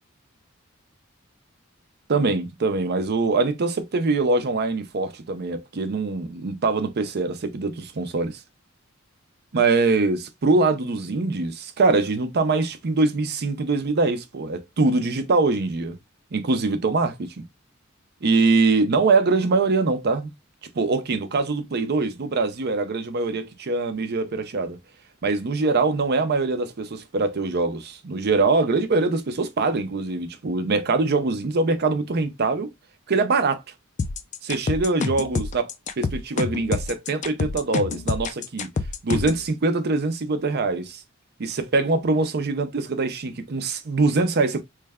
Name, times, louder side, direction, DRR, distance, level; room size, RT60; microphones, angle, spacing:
voice 1, 2.1-8.4 9.5-16.0 16.3-17.4 18.2-20.3 20.7-24.8 25.2-32.7 33.1-33.6 34.4-35.7 36.0-38.7 39.0-41.0 41.4-44.6, right 3 dB, 50° right, 0.6 m, -23 dB
sound 1, 34.0-39.4, left 4 dB, 35° left, 0.3 m, -27 dB
3.2 x 2.2 x 3.5 m
head